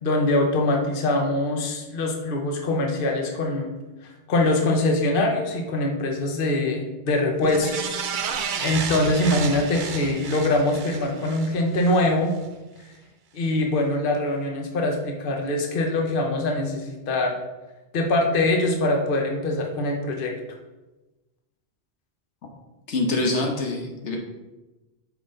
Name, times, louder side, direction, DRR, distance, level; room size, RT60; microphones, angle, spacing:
voice 1, 0.0-3.7 4.3-8.0 8.3-12.3 13.3-17.3 17.9-20.3, left 2 dB, 55° left, 2 dB, 1.1 m, -23 dB
sound 1, 7.4-12.0 12.4-12.5, right 6 dB, 55° right, 0.6 m, -32 dB
voice 2, 22.9-24.2, left 2 dB, 90° left, 1 dB, 1.4 m, -25 dB
6.2 x 5.3 x 3.8 m, 1.1 s
omnidirectional pair, 1.1 m